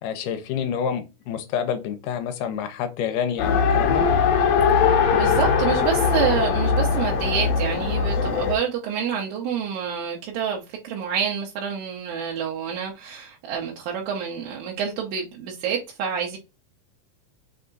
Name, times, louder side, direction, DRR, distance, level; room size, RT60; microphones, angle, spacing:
voice 1, 0.0-4.1, left 8 dB, 85° left, 2.2 m, -28 dB
Race car auto racing, 3.4-8.6, left 6 dB, 65° left, 1.9 m, -20 dB
voice 2, 4.8-16.4, right 7 dB, 70° right, 2.0 m, -28 dB
5.5 x 3.5 x 2.5 m
omnidirectional pair, 3.9 m